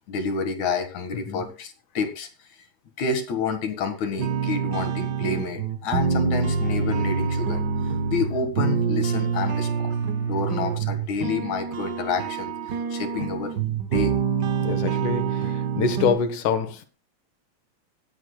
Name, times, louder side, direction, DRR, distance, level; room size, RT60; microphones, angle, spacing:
voice 1, 0.1-2.3 3.0-10.0 10.2-13.5 13.9-14.1, left 4 dB, 70° left, 3.1 m, -29 dB
sound 1, 4.2-16.2, right 6 dB, 80° right, 0.9 m, -26 dB
voice 2, 14.6-16.9, left 6 dB, 90° left, 2.8 m, -26 dB
24.5 x 8.4 x 2.3 m
omnidirectional pair, 3.4 m